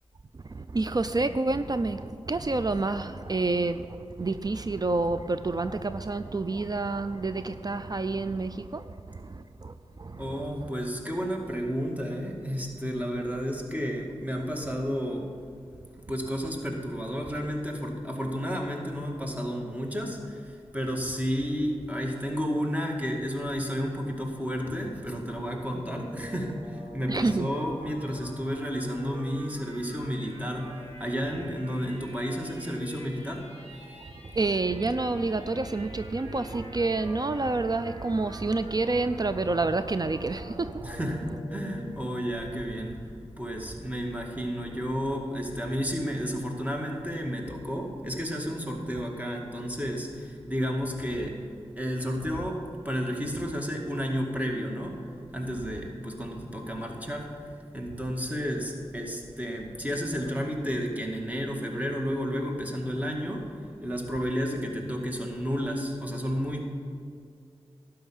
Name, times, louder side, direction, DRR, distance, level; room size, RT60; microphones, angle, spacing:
voice 1, 0.3-10.5 27.1-27.5 34.3-41.0, right 3 dB, 35° right, 11 dB, 0.4 m, -29 dB
voice 2, 10.2-15.3 16.1-33.4 40.8-51.4 51.8-55.0 55.3-66.6, equal, 15° right, 1 dB, 2.1 m, -32 dB
sound 1, 24.8-42.9, right 1 dB, 70° right, 2.7 m, -46 dB
12.0 x 5.7 x 9.0 m, 2.3 s
cardioid pair, 40°, 11 cm